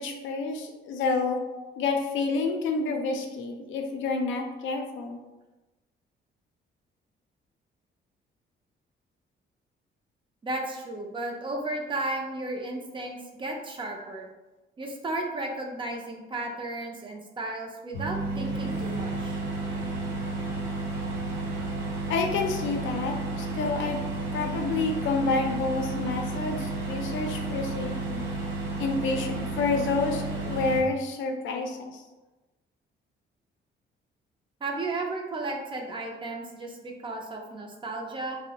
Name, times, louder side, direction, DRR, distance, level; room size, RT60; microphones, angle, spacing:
voice 1, 0.0-1.4 1.8-5.2 22.1-24.0 24.3-28.3 28.8-32.0, left 3 dB, 90° left, 3 dB, 0.4 m, -29 dB
voice 2, 1.5-1.8 10.4-14.3 14.8-19.4 34.6-38.4, right 2 dB, 25° right, 1 dB, 0.4 m, -34 dB
sound 1, 17.9-30.8, right 2 dB, 75° right, 0.8 m, -32 dB
2.6 x 2.0 x 2.8 m, 1.1 s
cardioid pair, 120°, 19 cm